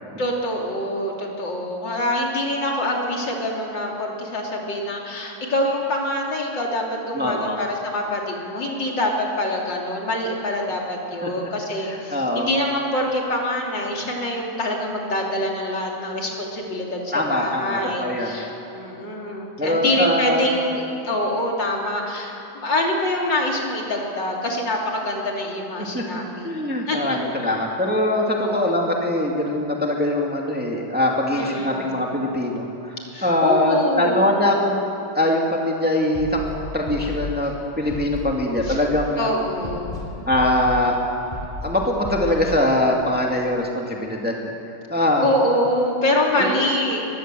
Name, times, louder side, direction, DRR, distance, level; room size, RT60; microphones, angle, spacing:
voice 1, 0.2-26.6 26.9-27.6 28.4-28.8 31.3-32.0 33.1-34.4 38.6-38.8 39.2-40.0 45.1-47.0, left 1 dB, 65° left, -1 dB, 3.8 m, -25 dB
voice 2, 7.1-7.6 11.2-11.3 12.1-12.5 17.1-18.4 19.6-20.5 25.8-26.0 26.4-34.8 35.1-39.3 40.3-41.0 41.6-44.4 44.7-45.3 46.4-46.5, left 1 dB, 5° right, -1 dB, 2.2 m, -22 dB
Scratching (performance technique), 36.1-36.5 36.9-37.2 37.9-38.2 38.6-38.9 39.6-40.0 40.3-40.7 41.3-41.6 42.0-42.3, left 1 dB, 20° left, 5.3 m, -33 dB
24.0 x 20.5 x 7.7 m, 2.9 s
omnidirectional pair, 2.1 m